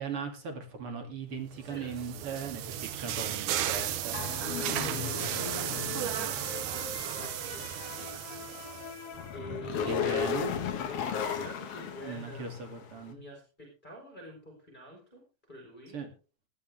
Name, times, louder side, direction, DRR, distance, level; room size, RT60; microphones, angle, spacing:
voice 1, 0.0-4.2 9.8-10.5 12.0-13.2 15.9-16.1, right 5 dB, 40° right, 5 dB, 2.6 m, -38 dB
voice 2, 1.6-2.0 3.5-3.9 4.6-6.0 6.6-8.8 9.3-10.6 10.8-12.5 13.0-16.0, equal, 10° left, 1 dB, 3.7 m, -48 dB
sound 1, 1.6-9.2, right 12 dB, 85° right, 1.8 m, -35 dB
sound 2, 4.1-12.8, left 7 dB, 85° left, 1.3 m, -36 dB
18.0 x 13.0 x 3.4 m, 0.34 s
omnidirectional pair, 5.0 m